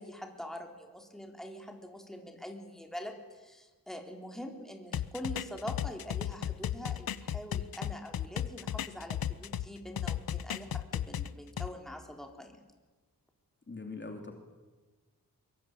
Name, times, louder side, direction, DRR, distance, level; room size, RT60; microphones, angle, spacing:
voice 1, 0.0-12.6, equal, ahead, 3 dB, 3.7 m, -44 dB
sound 1, 4.9-9.7 10.0-11.7, left 10 dB, 75° left, 0.9 m, -35 dB
voice 2, 13.7-14.3, left 3 dB, 30° left, 4 dB, 2.8 m, -42 dB
24.0 x 22.0 x 8.9 m, 1.3 s
wide cardioid pair, 105°, 35 cm